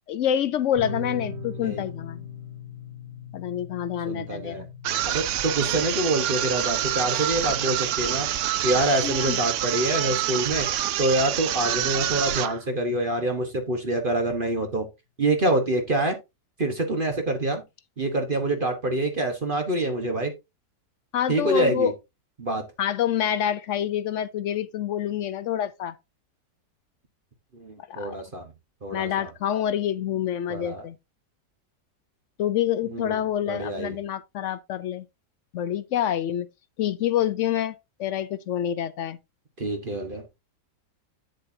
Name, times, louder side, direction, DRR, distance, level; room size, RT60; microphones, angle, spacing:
voice 1, 0.1-2.3 3.3-4.7 9.0-9.4 21.1-21.9 22.8-25.9 27.9-28.2 28.9-31.0 32.4-35.0 35.5-36.5 36.8-39.2, left 10 dB, 75° left, 0.7 m, -27 dB
sound 1, 0.7-11.8, left 3 dB, 20° left, 4.1 m, -41 dB
voice 2, 4.0-4.7 5.1-8.3 8.6-10.7 11.0-14.9 15.2-16.2 16.6-17.6 18.0-20.3 21.3-21.9 22.4-22.6 27.5-28.5 28.8-29.3 30.5-30.8 32.9-33.2 33.5-34.0 39.6-40.4, right 1 dB, 35° right, 1.2 m, -26 dB
sound 2, 4.8-12.6, right 12 dB, 70° right, 0.7 m, -27 dB
8.1 x 7.8 x 2.7 m
omnidirectional pair, 1.8 m